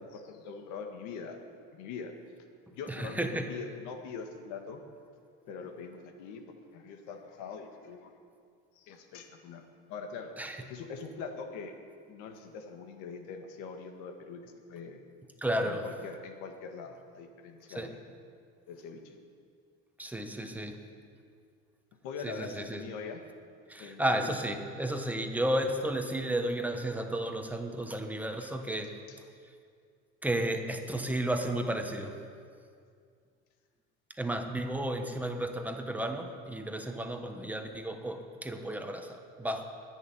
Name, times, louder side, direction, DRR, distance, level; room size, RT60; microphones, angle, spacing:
voice 1, 0.0-1.4 1.7-2.1 2.7-4.8 5.5-6.4 6.7-8.1 8.8-9.6 9.9-10.3 10.7-11.7 12.1-15.0 15.6-18.0 18.7-19.2 22.0-23.2 23.8-24.3 29.1-29.2, left 5 dB, 80° left, 5 dB, 1.8 m, -43 dB
voice 2, 2.9-3.5 10.4-10.6 15.4-15.9 17.7-17.9 20.0-20.8 22.2-22.8 23.7-29.0 30.2-32.2 34.2-39.6, right 1 dB, 5° right, 5 dB, 1.1 m, -33 dB
10.5 x 10.0 x 9.9 m, 2.2 s
cardioid pair, 135°, 29 cm